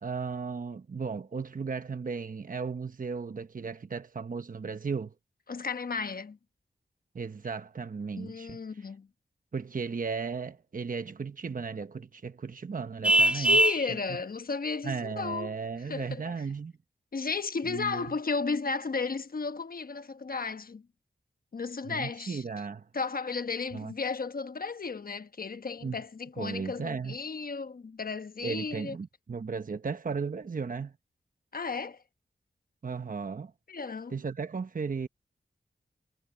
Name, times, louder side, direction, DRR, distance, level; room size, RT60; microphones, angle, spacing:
voice 1, 0.0-5.1 7.1-8.6 9.5-13.6 14.8-16.7 17.7-18.1 21.9-22.9 23.7-23.9 25.8-26.0 26.4-27.2 28.4-30.9 32.8-33.5 34.1-35.1, right 5 dB, 50° right, 1.0 m, -35 dB
voice 2, 5.5-6.4 8.2-9.1 13.1-15.5 15.9-16.3 17.1-20.8 21.5-22.4 22.9-29.0 31.5-32.0 33.7-34.2, left 4 dB, 55° left, 1.1 m, -34 dB
Vehicle horn car horn honking, 13.0-13.9, right 1 dB, 5° right, 0.6 m, -21 dB
cardioid pair, 50°, 18 cm